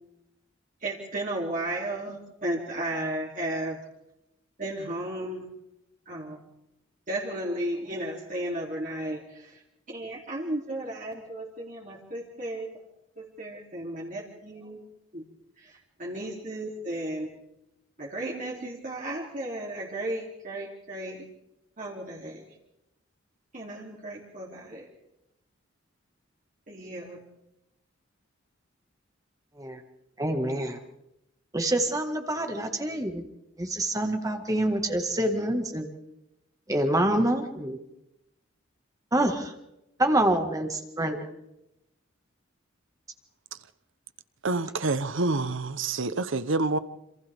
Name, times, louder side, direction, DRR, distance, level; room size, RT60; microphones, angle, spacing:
voice 1, 0.8-3.8 4.6-5.5 6.1-6.4 7.1-9.6 9.9-12.7 13.2-14.8 15.1-15.2 15.6-17.3 18.0-21.2 21.8-22.4 23.5-24.9 26.7-27.2, right 1 dB, 40° right, -3 dB, 3.1 m, -34 dB
voice 2, 30.2-30.8 31.5-33.2 33.6-35.9 36.7-37.8 39.1-39.5 40.0-41.2, right 1 dB, 15° right, 5 dB, 1.8 m, -26 dB
voice 3, 44.4-46.8, right 3 dB, 70° right, 13 dB, 1.0 m, -27 dB
28.0 x 27.0 x 3.6 m, 0.87 s
head